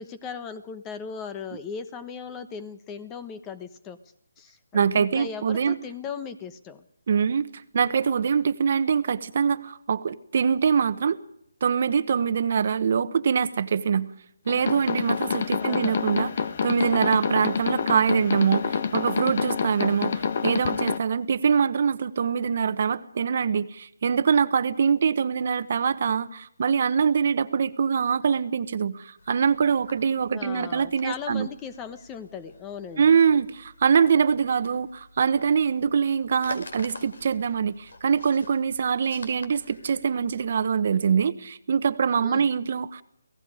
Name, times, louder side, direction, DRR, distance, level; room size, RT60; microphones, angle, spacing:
voice 1, 0.0-4.0 4.4-6.8 15.6-16.0 30.3-33.2 42.2-42.5, left 6 dB, 15° left, 11 dB, 1.1 m, -38 dB
voice 2, 4.7-5.8 7.1-11.2 11.6-14.1 14.5-16.3 16.6-31.5 33.0-43.0, right 6 dB, 50° right, 13 dB, 1.2 m, -24 dB
sound 1, 14.5-21.0, left 6 dB, 45° left, 1.3 m, -27 dB
sound 2, 29.2-40.7, left 3 dB, 70° left, 4.8 m, -48 dB
29.5 x 18.0 x 5.1 m, 0.71 s
hypercardioid pair, 160°, 0 cm